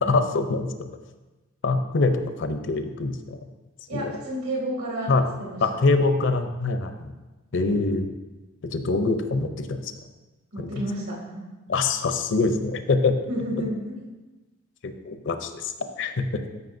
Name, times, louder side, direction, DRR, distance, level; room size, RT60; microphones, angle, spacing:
voice 1, 0.0-0.9 1.6-3.4 3.9-4.1 5.1-5.3 5.6-7.1 7.5-8.1 8.7-9.9 10.6-10.7 11.7-13.2 14.8-16.4, left 3 dB, 60° left, 8 dB, 0.6 m, -24 dB
voice 2, 3.9-5.1 5.4-5.6 10.5-11.4 13.3-14.0, right 1 dB, 75° right, -3 dB, 2.7 m, -31 dB
13.5 x 5.5 x 2.6 m, 1.2 s
head